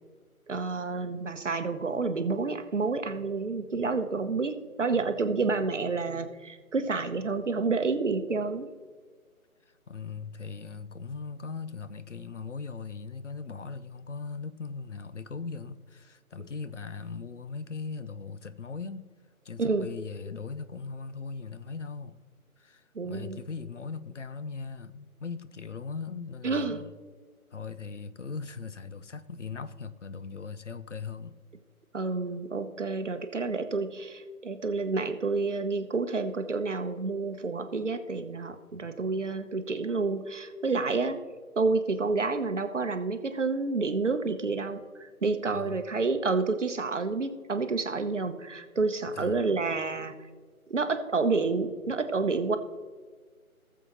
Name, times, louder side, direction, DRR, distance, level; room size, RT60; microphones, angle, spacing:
voice 1, 0.5-8.7 19.6-19.9 22.9-23.4 26.4-26.8 31.9-41.2 41.6-50.1 50.7-52.6, right 4 dB, 55° right, 0.9 m, -29 dB
voice 2, 9.9-19.1 19.4-22.2 22.6-26.9 27.5-31.4 45.5-45.8 49.2-49.4, left 5 dB, 55° left, 0.6 m, -39 dB
18.5 x 7.2 x 3.0 m
figure-of-eight pair, 155°, 44 cm